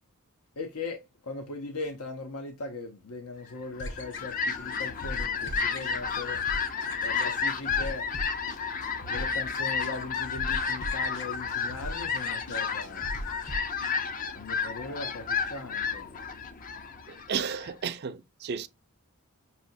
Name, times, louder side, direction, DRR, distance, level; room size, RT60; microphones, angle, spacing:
voice 1, 0.6-6.4 7.0-8.1 8.5-8.7 9.0-13.1 14.3-16.1, left 3 dB, 85° left, 0.8 m, -39 dB
sound 1, 3.8-13.9, left 2 dB, 55° left, 1.1 m, -39 dB
Fowl, 3.8-17.7, left 5 dB, 40° left, 0.5 m, -32 dB
voice 2, 17.1-18.7, right 7 dB, 45° right, 0.4 m, -33 dB
6.0 x 2.8 x 2.6 m
head